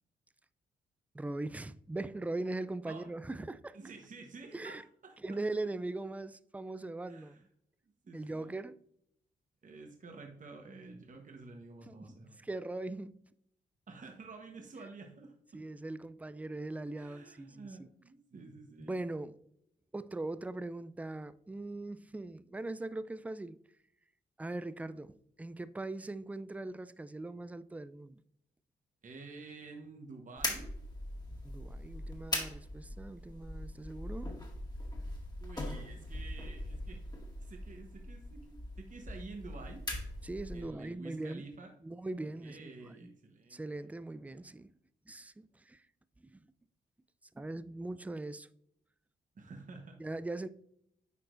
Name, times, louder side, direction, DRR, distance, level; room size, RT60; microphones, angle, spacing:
voice 1, 1.1-3.8 4.5-4.8 5.2-7.4 8.1-8.7 11.9-12.0 12.4-13.1 15.5-17.9 18.9-19.4 19.9-23.6 24.4-28.2 31.4-34.4 40.2-41.5 41.8-43.1 43.5-44.7 45.1-45.8 46.2-46.4 47.3-48.5 50.0-50.5, right 2 dB, 5° right, 0.3 m, -40 dB
voice 2, 3.7-5.2 7.1-7.4 8.0-8.6 9.6-12.5 13.9-15.6 17.0-19.1 29.0-30.8 35.4-37.1 37.4-39.8 40.5-41.7 42.2-43.6 49.4-50.0, right 3 dB, 40° right, 1.1 m, -50 dB
sound 1, 30.4-40.7, left 1 dB, 20° left, 1.8 m, -41 dB
8.3 x 4.5 x 2.5 m
supercardioid pair, 50°, 20 cm